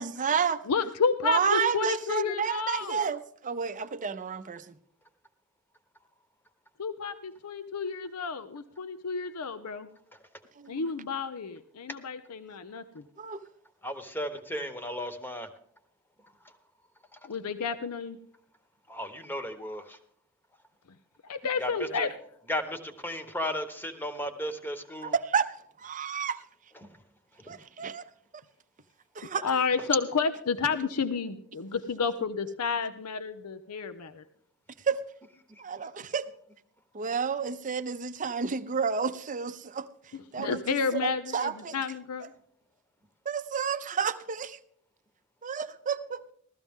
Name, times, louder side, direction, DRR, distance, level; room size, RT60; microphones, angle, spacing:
voice 1, 0.0-0.6 1.2-4.7 10.6-10.8 13.2-13.4 25.0-25.5 25.8-26.4 27.5-28.0 29.2-29.4 34.9-35.0 35.6-36.3 36.9-39.9 40.3-40.6 40.9-41.7 43.3-44.6 45.4-46.2, right 6 dB, 35° right, 0.6 m, -30 dB
voice 2, 0.7-3.0 6.8-9.9 10.7-13.1 17.2-18.2 21.2-22.1 29.4-34.2 40.1-42.3, left 5 dB, 85° left, 0.6 m, -31 dB
voice 3, 13.8-15.5 18.9-20.0 21.6-22.1 22.5-25.1 26.8-26.9 27.5-27.6 35.5-35.6, equal, 10° left, 1.0 m, -35 dB
16.0 x 13.5 x 3.6 m
head